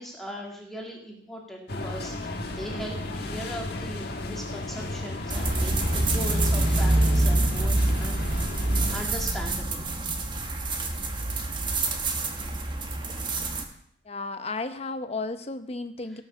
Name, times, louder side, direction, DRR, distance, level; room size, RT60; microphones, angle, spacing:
voice 1, 0.0-8.2 8.6-9.9, equal, ahead, -1 dB, 1.9 m, -39 dB
sound 1, 1.7-9.0, left 2 dB, 65° left, 1.4 m, -34 dB
sound 2, 5.3-13.6, right 2 dB, 25° right, 1.3 m, -26 dB
voice 2, 14.0-16.2, left 3 dB, 35° left, 9 dB, 0.9 m, -33 dB
17.5 x 6.4 x 6.1 m, 0.67 s
head